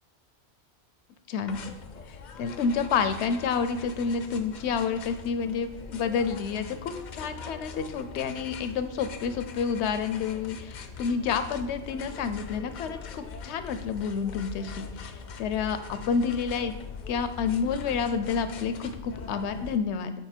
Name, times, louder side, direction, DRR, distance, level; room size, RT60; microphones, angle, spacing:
sound 1, 1.5-19.8, left 6 dB, 55° left, 0.5 m, -42 dB
voice 1, 2.4-16.7 17.1-20.1, left 6 dB, 80° left, 10 dB, 0.9 m, -29 dB
7.2 x 3.9 x 4.4 m, 0.96 s
omnidirectional pair, 1.2 m